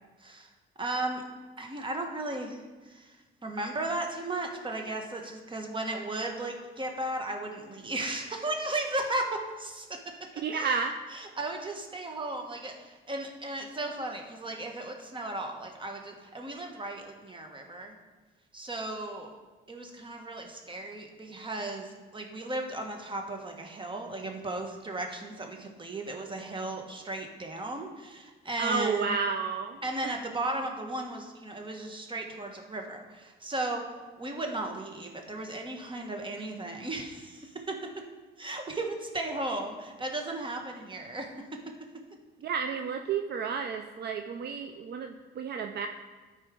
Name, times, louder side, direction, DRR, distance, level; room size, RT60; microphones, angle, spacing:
voice 1, 0.2-0.5 0.8-1.2 1.6-2.6 2.8-3.2 3.4-9.9 10.5-10.8 11.1-17.9 18.5-19.3 19.7-29.1 29.8-33.8 34.2-37.8 38.4-41.6, right 2 dB, 25° right, 3 dB, 1.2 m, -35 dB
voice 2, 10.4-10.9 28.6-30.2 42.4-45.9, right 5 dB, 55° right, 6 dB, 0.5 m, -31 dB
13.0 x 4.5 x 3.7 m, 1.3 s
cardioid pair, 90°, 20 cm